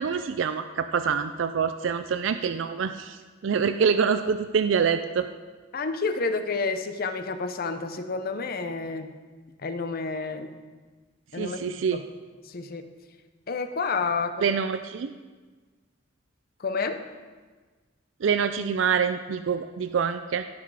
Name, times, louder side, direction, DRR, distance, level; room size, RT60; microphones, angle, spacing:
voice 1, 0.0-3.2 3.4-5.3 11.4-12.0 14.4-15.1 18.2-20.4, right 6 dB, 70° right, 9 dB, 0.4 m, -25 dB
voice 2, 5.7-9.1 9.6-10.5 11.3-12.0 12.4-12.8 13.5-14.6 16.6-17.0, left 4 dB, 50° left, 9 dB, 0.7 m, -30 dB
16.5 x 6.1 x 4.8 m, 1.4 s
head